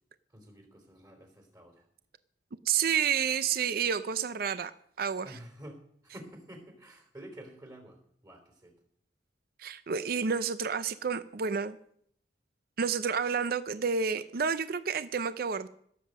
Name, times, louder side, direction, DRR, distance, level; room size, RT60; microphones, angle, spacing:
voice 1, 0.3-1.8 5.2-5.8 6.0-8.0 8.2-8.7, right 1 dB, 25° right, 4 dB, 3.3 m, -49 dB
voice 2, 2.7-4.7 5.0-5.4 9.6-11.8 12.8-15.7, right 6 dB, 55° right, 13 dB, 0.5 m, -30 dB
16.5 x 7.5 x 6.4 m, 0.68 s
head